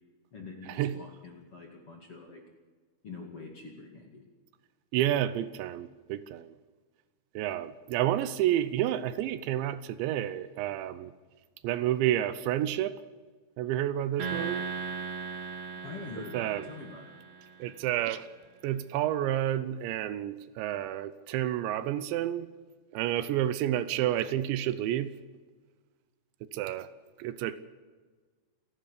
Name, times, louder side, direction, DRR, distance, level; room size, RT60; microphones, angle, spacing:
voice 1, 0.3-2.4 3.0-4.2 15.8-17.1, left 3 dB, 40° left, 1 dB, 2.2 m, -45 dB
voice 2, 4.9-6.5 7.4-11.1 11.6-12.9 13.6-14.7 16.3-16.6 17.6-18.3 18.6-22.5 22.9-25.1 26.5-26.9 27.2-27.6, right 12 dB, 80° right, 14 dB, 2.9 m, -30 dB
sound 1, 14.2-17.7, right 5 dB, 45° right, 2.9 m, -38 dB
28.0 x 12.0 x 8.3 m, 1.4 s
omnidirectional pair, 5.4 m